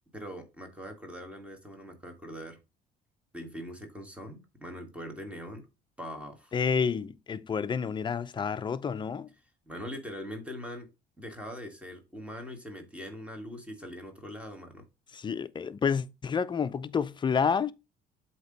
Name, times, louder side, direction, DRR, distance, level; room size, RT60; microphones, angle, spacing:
voice 1, 0.1-2.6 3.3-5.6 6.0-6.5 9.7-10.9 11.2-14.8, equal, 5° right, 1.7 m, -42 dB
voice 2, 6.5-9.3 15.1-17.7, left 6 dB, 25° left, 0.5 m, -29 dB
7.8 x 2.9 x 5.2 m
cardioid pair, 110°, 17 cm